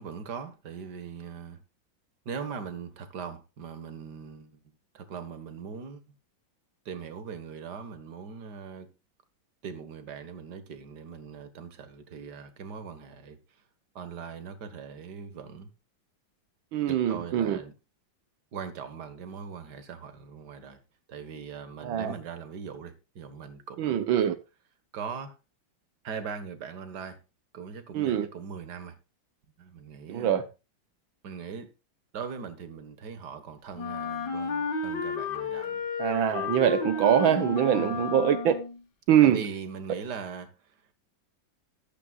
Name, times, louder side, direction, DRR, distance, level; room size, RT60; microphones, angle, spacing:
voice 1, 0.0-1.6 2.3-4.6 4.9-6.0 6.9-8.9 9.6-13.6 14.0-15.7 16.9-17.7 18.5-20.8 21.1-24.1 24.9-25.4 26.0-27.2 27.5-29.0 29.6-30.5 31.2-31.7 32.1-35.8 37.7-38.0 39.2-40.9, right 6 dB, 60° right, 2.1 m, -40 dB
voice 2, 16.7-17.6 21.8-22.1 23.8-24.4 27.9-28.3 30.1-30.4 36.0-38.5 39.1-39.4, right 10 dB, 85° right, 1.8 m, -23 dB
Wind instrument woodwind instrument, 33.7-38.8, left 5 dB, 60° left, 2.0 m, -32 dB
14.0 x 12.5 x 2.4 m
omnidirectional pair, 2.1 m